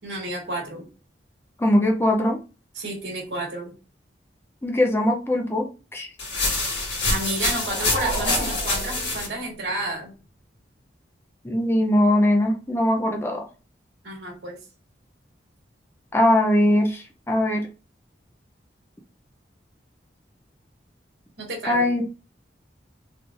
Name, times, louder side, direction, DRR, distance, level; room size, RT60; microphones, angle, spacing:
voice 1, 0.0-0.9 2.7-3.7 7.0-10.1 14.0-14.6 21.4-21.9, right 1 dB, 75° right, -1 dB, 1.6 m, -31 dB
voice 2, 1.6-2.4 4.6-5.7 5.9-6.1 11.4-13.4 16.1-17.6 21.7-22.0, left 1 dB, 15° left, 2 dB, 0.5 m, -21 dB
sound 1, 6.2-9.3, left 2 dB, 85° left, 1.7 m, -26 dB
sound 2, 7.3-9.8, right 2 dB, 15° right, 1.2 m, -32 dB
3.8 x 3.1 x 2.4 m, 0.34 s
head